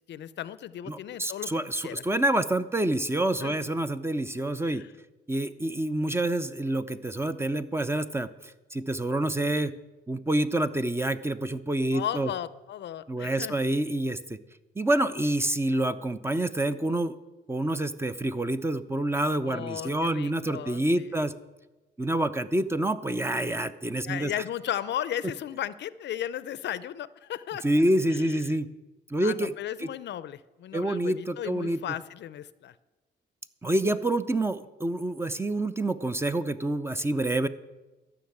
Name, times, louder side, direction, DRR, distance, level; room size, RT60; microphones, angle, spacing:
voice 1, 0.1-1.5 1.8-2.0 3.4-3.6 4.7-4.9 11.9-13.6 19.4-21.2 24.1-27.6 28.1-28.4 29.2-32.7, left 11 dB, 65° left, 16 dB, 0.5 m, -35 dB
voice 2, 0.9-4.8 5.3-8.3 8.7-9.7 10.1-12.3 13.1-14.4 14.8-17.1 17.5-21.3 22.0-24.3 27.6-28.7 29.1-29.5 29.8-29.9 30.7-31.8 33.6-37.5, right 1 dB, 10° right, 12 dB, 0.6 m, -27 dB
13.0 x 5.9 x 8.6 m, 1.1 s
cardioid pair, 90°, 20 cm